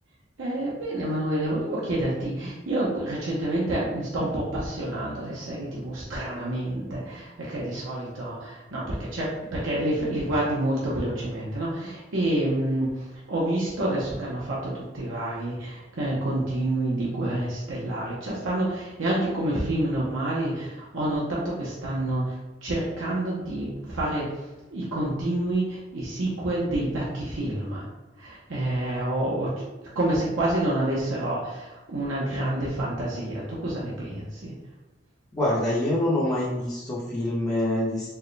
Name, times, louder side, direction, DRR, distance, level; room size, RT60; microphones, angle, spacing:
voice 1, 0.4-27.9 28.2-29.7 29.9-34.5, right 1 dB, 85° right, -6 dB, 0.8 m, -28 dB
voice 2, 35.3-38.1, left 1 dB, 20° left, -7 dB, 0.6 m, -25 dB
4.5 x 2.2 x 3.2 m, 1.1 s
head